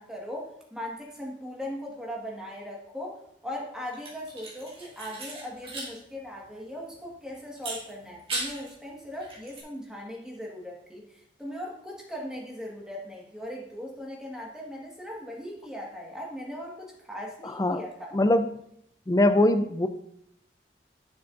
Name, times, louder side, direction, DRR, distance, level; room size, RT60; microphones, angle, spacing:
voice 1, 0.0-18.2, equal, 5° right, -2 dB, 1.5 m, -39 dB
sound 1, 3.9-5.9 6.2-6.3 7.6-8.7 9.1-9.6, right 2 dB, 30° right, 2.5 m, -37 dB
voice 2, 18.1-18.6 19.1-19.9, left 1 dB, 20° left, 9 dB, 0.4 m, -22 dB
10.5 x 7.0 x 2.5 m, 0.73 s
head